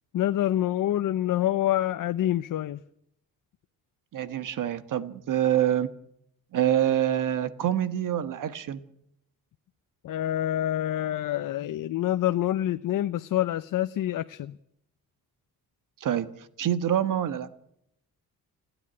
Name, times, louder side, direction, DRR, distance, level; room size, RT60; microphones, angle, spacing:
voice 1, 0.1-2.8 10.0-14.5, left 12 dB, 65° left, 12 dB, 0.7 m, -26 dB
voice 2, 4.1-5.9 6.5-8.8 16.0-16.2 16.6-17.5, right 11 dB, 60° right, 13 dB, 1.4 m, -26 dB
29.0 x 9.9 x 9.8 m, 0.77 s
wide cardioid pair, 165°, 35 cm